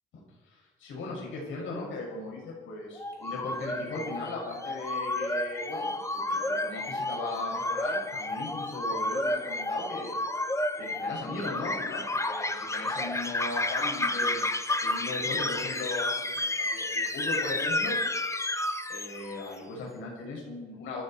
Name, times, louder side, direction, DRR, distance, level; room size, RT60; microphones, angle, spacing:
voice 1, 0.5-5.9 6.1-10.1 10.8-14.5 14.8-18.0 18.9-21.0, left 2 dB, 80° left, -2 dB, 6.8 m, -38 dB
sound 1, 3.0-19.5, left 2 dB, 15° left, 1.2 m, -31 dB
28.5 x 10.0 x 4.6 m, 1.3 s
cardioid pair, 90°, 20 cm